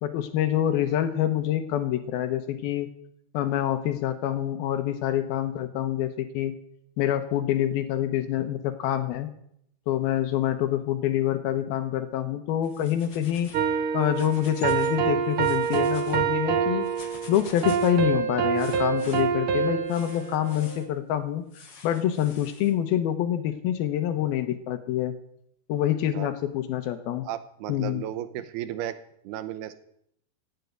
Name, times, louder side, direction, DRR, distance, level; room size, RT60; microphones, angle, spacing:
voice 1, 0.0-2.9 3.3-6.5 7.0-9.3 9.9-13.5 13.9-16.9 17.3-21.4 21.8-25.1 25.7-27.3 27.7-28.0, left 11 dB, 80° left, 9 dB, 2.8 m, -26 dB
sound 1, 12.6-13.7 14.0-15.0 15.3-16.2 16.8-18.0 18.5-19.2 19.9-20.9 21.5-22.7, left 5 dB, 40° left, 1.8 m, -48 dB
sound 2, 13.5-20.8, right 7 dB, 60° right, 1.5 m, -26 dB
voice 2, 27.2-29.0 29.2-29.7, right 12 dB, 90° right, 12 dB, 3.0 m, -34 dB
17.0 x 8.2 x 9.3 m, 0.71 s
omnidirectional pair, 4.4 m